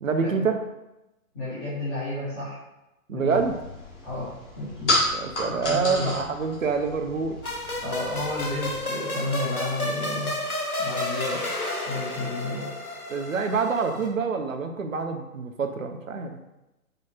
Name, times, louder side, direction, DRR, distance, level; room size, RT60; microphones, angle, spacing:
voice 1, 0.0-0.6 3.1-3.6 5.1-7.4 13.1-16.4, right 5 dB, 65° right, 6 dB, 0.7 m, -26 dB
voice 2, 1.3-2.6 3.1-3.4 4.0-4.9 5.5-6.1 7.8-10.3 10.8-11.4 11.9-12.7, left 2 dB, 15° left, -11 dB, 0.8 m, -31 dB
sound 1, 3.3-8.8, left 1 dB, 50° left, 1.5 m, -31 dB
sound 2, 7.4-14.1, left 1 dB, 90° left, 1.0 m, -31 dB
5.1 x 2.4 x 4.3 m, 0.95 s
figure-of-eight pair, 130°, 43 cm